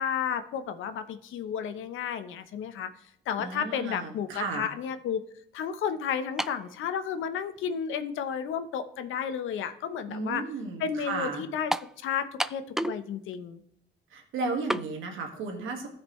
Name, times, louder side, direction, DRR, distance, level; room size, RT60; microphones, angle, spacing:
voice 1, 0.0-2.9 3.3-5.2 5.5-10.4 10.8-11.7 12.0-13.6, left 7 dB, 80° left, 10 dB, 0.9 m, -32 dB
voice 2, 3.4-4.7 10.1-11.4 14.1-15.9, right 3 dB, 80° right, 2 dB, 1.8 m, -34 dB
sound 1, 6.4-6.7 7.6-7.7 11.7-12.0 12.4-13.0 13.3-13.4 14.7-14.9, right 1 dB, ahead, 0.3 m, -30 dB
15.0 x 5.2 x 3.2 m, 0.68 s
cardioid pair, 90°, 20 cm